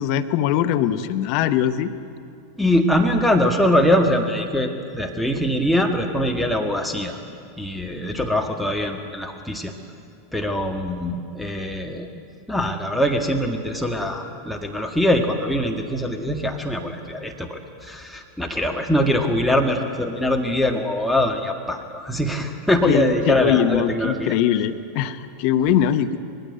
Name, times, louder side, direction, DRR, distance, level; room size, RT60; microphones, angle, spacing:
voice 1, 0.0-1.9 22.9-26.2, left 10 dB, 50° left, 11 dB, 1.0 m, -21 dB
voice 2, 2.6-7.2 7.6-9.7 10.3-12.1 12.5-24.4, left 1 dB, ahead, 2 dB, 1.7 m, -22 dB
20.5 x 16.0 x 9.6 m, 2.4 s
figure-of-eight pair, 85°, 0 cm